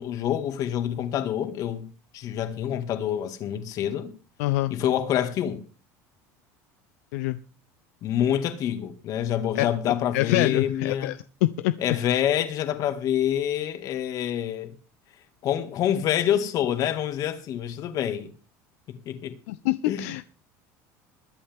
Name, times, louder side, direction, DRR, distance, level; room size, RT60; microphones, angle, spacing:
voice 1, 0.0-1.8 2.1-4.1 4.7-5.6 8.0-11.2 11.8-14.7 15.4-18.3 19.1-19.4 19.9-20.1, left 10 dB, 50° left, 2.1 m, -26 dB
voice 2, 4.4-4.7 7.1-7.4 9.6-9.7 10.1-11.7 19.5-20.2, left 17 dB, 80° left, 0.6 m, -25 dB
21.5 x 8.7 x 3.6 m
supercardioid pair, 120°, 8 cm